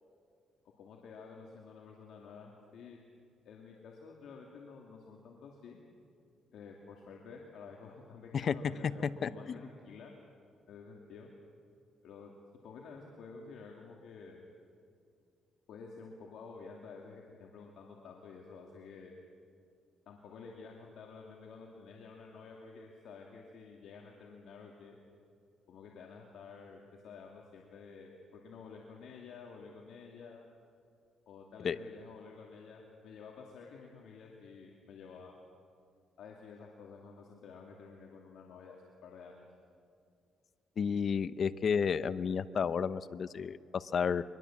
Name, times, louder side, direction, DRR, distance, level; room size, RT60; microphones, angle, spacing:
voice 1, 0.8-3.0 3.4-5.8 6.5-10.1 10.7-11.3 12.0-12.3 12.6-14.4 15.7-19.1 20.1-25.0 25.7-30.4 31.3-35.3 36.2-39.5, left 5 dB, 75° left, 0 dB, 2.5 m, -51 dB
voice 2, 9.2-9.6 31.6-31.8 40.8-44.2, left 6 dB, 50° left, 15 dB, 0.7 m, -32 dB
23.5 x 21.5 x 7.3 m, 2.3 s
cardioid pair, 90°, 0 cm